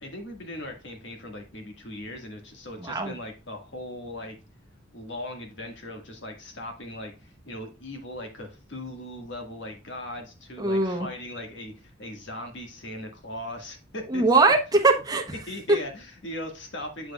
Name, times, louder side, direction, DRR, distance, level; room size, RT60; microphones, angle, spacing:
voice 1, 0.0-4.4 4.9-14.2 15.5-17.1, left 1 dB, 60° left, 3 dB, 1.7 m, -39 dB
voice 2, 2.8-3.1 10.6-11.1 14.1-15.2 15.7-15.8, right 3 dB, 20° right, 3 dB, 0.9 m, -21 dB
7.7 x 6.7 x 2.3 m, 0.30 s
head